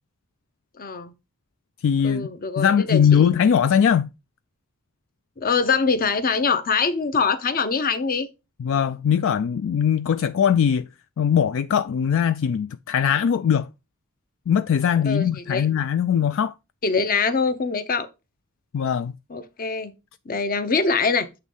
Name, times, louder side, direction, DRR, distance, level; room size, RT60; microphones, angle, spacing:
voice 1, 0.8-1.1 2.0-3.3 5.4-8.3 15.0-15.7 16.8-18.1 19.3-19.9 20.3-21.3, left 5 dB, 45° left, 0.8 m, -23 dB
voice 2, 1.8-2.3 2.6-4.1 8.6-10.8 11.2-13.7 14.5-16.5 18.7-19.1, left 8 dB, 65° left, 0.3 m, -20 dB
8.1 x 3.1 x 5.4 m
head